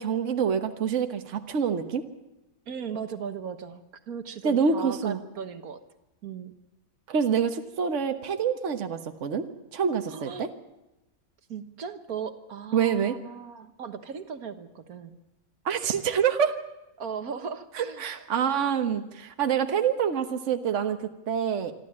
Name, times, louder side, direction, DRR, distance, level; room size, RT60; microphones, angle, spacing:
voice 1, 0.0-2.0 4.4-5.2 7.1-9.5 9.7-10.5 12.7-13.2 15.6-16.6 17.7-21.7, right 7 dB, 55° right, 7 dB, 1.5 m, -26 dB
voice 2, 2.7-5.8 6.2-6.5 10.1-10.5 11.5-15.2 17.0-18.3, right 6 dB, 75° right, 9 dB, 1.7 m, -37 dB
26.0 x 12.0 x 8.6 m, 0.96 s
omnidirectional pair, 1.5 m